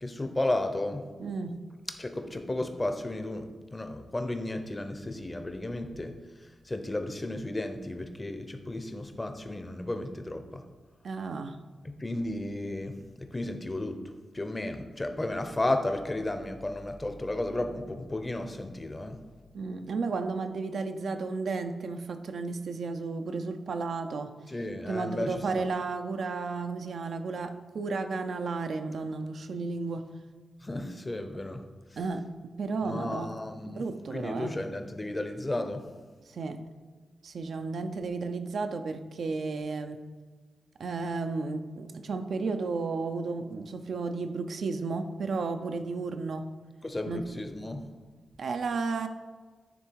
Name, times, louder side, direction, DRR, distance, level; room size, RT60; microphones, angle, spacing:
voice 1, 0.0-1.0 1.9-10.6 11.8-19.2 24.5-25.7 30.6-31.6 32.8-33.8 34.1-35.8 46.8-47.9, left 1 dB, 25° left, 6 dB, 0.8 m, -33 dB
voice 2, 1.2-1.6 11.0-11.6 19.5-24.3 24.9-30.1 32.0-32.3 32.6-33.3 33.6-34.6 36.3-36.6 37.2-40.0 40.8-46.5 47.1-47.2 48.4-49.1, right 4 dB, 70° right, 7 dB, 0.5 m, -33 dB
9.8 x 3.4 x 4.7 m, 1.4 s
cardioid pair, 60°, 0 cm